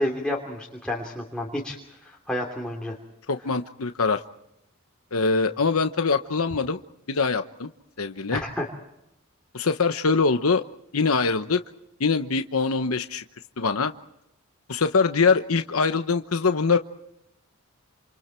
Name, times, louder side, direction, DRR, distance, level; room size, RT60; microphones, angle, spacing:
voice 1, 0.0-1.8 2.0-2.9 8.3-8.7, left 1 dB, 5° left, -1 dB, 3.0 m, -30 dB
voice 2, 3.3-4.2 5.1-6.8 7.1-7.7 8.0-8.4 9.5-10.6 10.9-11.6 12.0-13.2 13.6-13.9 14.7-16.8, left 4 dB, 85° left, 8 dB, 1.0 m, -23 dB
28.5 x 28.0 x 4.5 m, 0.83 s
head